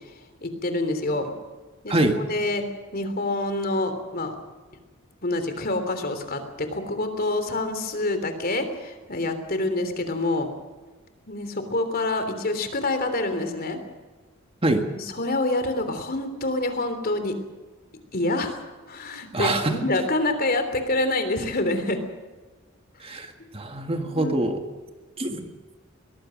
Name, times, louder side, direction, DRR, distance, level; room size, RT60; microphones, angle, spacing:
voice 1, 0.4-1.3 1.8-2.7 2.9-4.3 5.2-10.5 11.3-13.8 15.2-17.4 18.1-18.6 18.9-22.0 23.1-23.2 24.0-24.3, left 2 dB, 45° left, 8 dB, 3.4 m, -27 dB
voice 2, 1.9-2.2 14.6-14.8 19.3-19.8 23.0-24.6 25.2-25.5, right 2 dB, 25° right, 5 dB, 1.8 m, -25 dB
23.5 x 19.5 x 6.4 m, 1.3 s
head